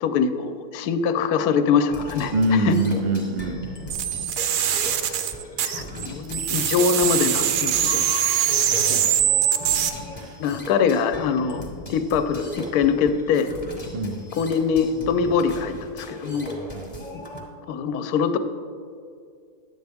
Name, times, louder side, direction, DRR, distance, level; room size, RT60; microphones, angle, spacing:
voice 1, 0.0-2.3 2.6-2.8 5.6-8.0 10.4-13.5 14.4-16.6 17.1-17.2 17.7-18.4, left 6 dB, 70° left, 10 dB, 1.0 m, -23 dB
sound 1, 1.9-17.4, left 1 dB, 25° left, 1.1 m, -37 dB
voice 2, 2.3-3.6 5.9-6.0 8.3-9.1 10.1-10.4 13.9-14.2 16.7-16.9, right 1 dB, 65° right, 3 dB, 0.5 m, -25 dB
sound 2, 3.9-6.1 6.3-9.9, right 10 dB, 85° right, 1.2 m, -22 dB
10.5 x 7.9 x 3.4 m, 2.3 s
omnidirectional pair, 1.8 m